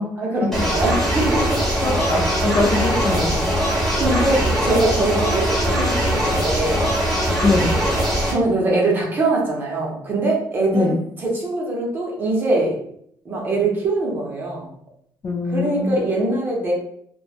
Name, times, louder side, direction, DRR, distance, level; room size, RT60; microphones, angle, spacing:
voice 1, 0.2-1.6 4.0-6.9 8.2-10.9 11.2-12.8 13.2-14.7 15.5-16.7, right 2 dB, 25° right, -2 dB, 0.6 m, -22 dB
sound 1, 0.5-8.3, equal, 5° left, 0.9 m, -21 dB
voice 2, 1.8-3.4 7.4-7.7 10.7-11.0 15.2-16.0, left 3 dB, 30° left, 0 dB, 0.4 m, -22 dB
3.0 x 2.1 x 2.4 m, 0.68 s
cardioid pair, 175°, 8 cm